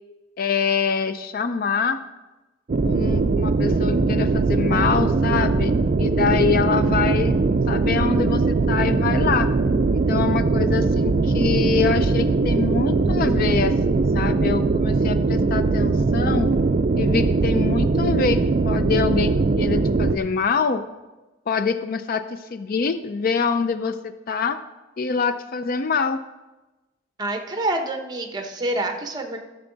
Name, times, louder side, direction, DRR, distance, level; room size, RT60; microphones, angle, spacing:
voice 1, 0.4-2.0 2.8-7.4 7.7-9.5 9.9-16.5 17.0-20.8 21.5-24.6 25.0-26.2, left 5 dB, 50° left, 11 dB, 0.4 m, -25 dB
sound 1, 2.7-20.2, right 3 dB, 45° right, 0.4 m, -20 dB
voice 2, 27.2-29.4, right 2 dB, 20° right, 4 dB, 1.0 m, -27 dB
13.0 x 7.0 x 3.9 m, 1.1 s
head